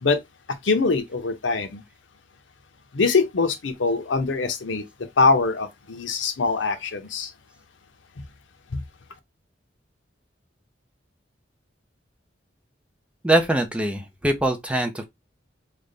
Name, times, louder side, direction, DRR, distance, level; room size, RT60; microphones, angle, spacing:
voice 1, 0.6-1.8 2.9-4.8 5.2-7.3 8.7-8.8, left 4 dB, 80° left, 0.7 m, -23 dB
voice 2, 13.2-15.0, right 1 dB, 5° right, 0.5 m, -22 dB
3.4 x 2.2 x 3.8 m
head